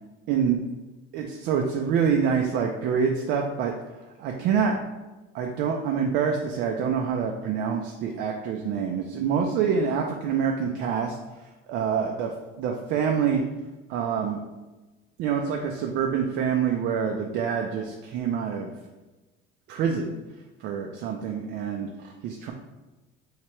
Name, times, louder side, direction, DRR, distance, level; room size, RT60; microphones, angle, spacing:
voice 1, 0.3-0.6 1.1-4.8 5.3-13.4 13.9-14.4 15.2-18.7 19.7-20.2 20.6-22.5, right 6 dB, 60° right, 2 dB, 0.4 m, -26 dB
3.0 x 2.8 x 4.4 m, 1.1 s
cardioid pair, 160°, 20 cm